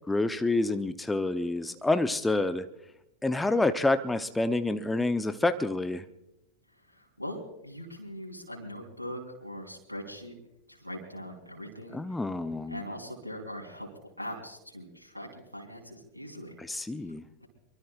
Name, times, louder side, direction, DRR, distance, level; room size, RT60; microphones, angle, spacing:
voice 1, 0.1-2.7 3.2-6.0 11.9-12.8 16.6-17.2, left 2 dB, 10° left, 10 dB, 0.8 m, -28 dB
voice 2, 6.9-10.3 10.7-12.0 12.7-13.9 14.2-16.6 17.4-17.5, equal, 90° right, 1 dB, 3.8 m, -41 dB
24.0 x 24.0 x 2.5 m, 0.87 s
figure-of-eight pair, 90°, 0 cm